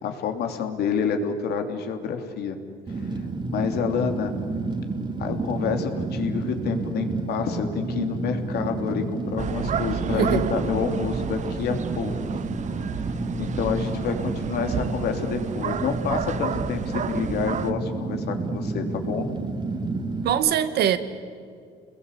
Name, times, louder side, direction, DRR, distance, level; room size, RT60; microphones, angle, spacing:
voice 1, 0.0-2.6 3.0-3.1 3.5-4.3 5.2-12.4 12.7-13.1 13.4-19.3, left 7 dB, 70° left, 5 dB, 3.1 m, -28 dB
Fire, 2.9-20.3, right 3 dB, 30° right, 2.5 m, -30 dB
sound 1, 9.4-17.7, right 8 dB, 45° right, 1.0 m, -32 dB
voice 2, 10.2-10.5 20.2-21.0, right 9 dB, 70° right, 10 dB, 1.7 m, -22 dB
28.5 x 21.0 x 8.3 m, 2.2 s
cardioid pair, 110°, 17 cm